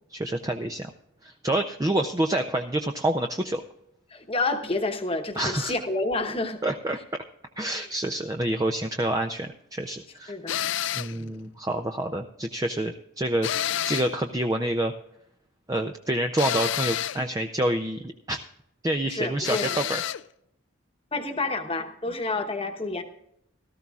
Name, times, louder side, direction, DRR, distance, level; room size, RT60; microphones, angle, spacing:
voice 1, 0.1-0.9 1.2-3.6 5.4-5.7 6.6-7.2 7.6-10.3 10.9-14.9 15.7-18.4 18.8-20.0, right 1 dB, 15° right, 5 dB, 0.4 m, -28 dB
voice 2, 4.1-6.6 10.3-10.6 11.1-11.4 19.0-19.9 21.1-23.0, left 3 dB, 25° left, 6 dB, 1.0 m, -29 dB
sound 1, 10.5-11.2 13.4-14.2 16.4-17.2 19.4-20.2, left 11 dB, 60° left, 0.3 m, -29 dB
17.5 x 13.5 x 2.4 m, 0.78 s
head